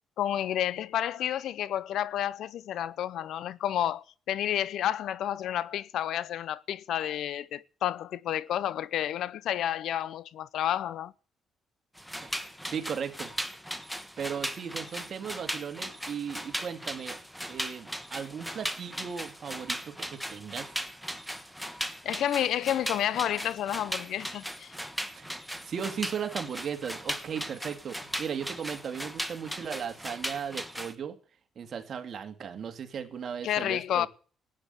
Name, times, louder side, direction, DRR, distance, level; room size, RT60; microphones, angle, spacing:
voice 1, 0.2-11.1 22.0-24.7 33.4-34.1, left 11 dB, 75° left, 0.6 m, -30 dB
sound 1, 12.0-30.9, equal, ahead, 1.3 m, -38 dB
voice 2, 12.7-13.3 14.2-17.2 17.5-20.7 25.2-25.3 25.6-31.1 31.6-34.1, right 7 dB, 55° right, 2.3 m, -36 dB
13.0 x 9.4 x 8.3 m
cardioid pair, 85°, 0 cm